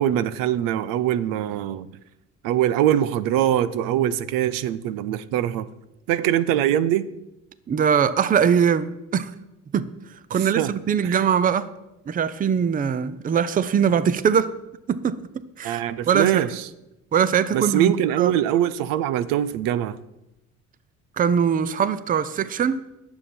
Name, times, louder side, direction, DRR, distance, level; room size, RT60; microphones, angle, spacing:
voice 1, 0.0-1.9 2.4-5.6 6.1-7.1 10.6-10.7 11.0-11.2 15.6-16.7 17.5-20.0, right 11 dB, 90° right, 0.7 m, -23 dB
voice 2, 7.7-9.3 9.7-9.9 10.3-11.7 12.1-14.5 14.9-15.2 15.6-16.5 17.1-18.3 21.2-22.8, right 7 dB, 25° right, 0.5 m, -21 dB
20.0 x 7.2 x 4.4 m
cardioid pair, 130°, 32 cm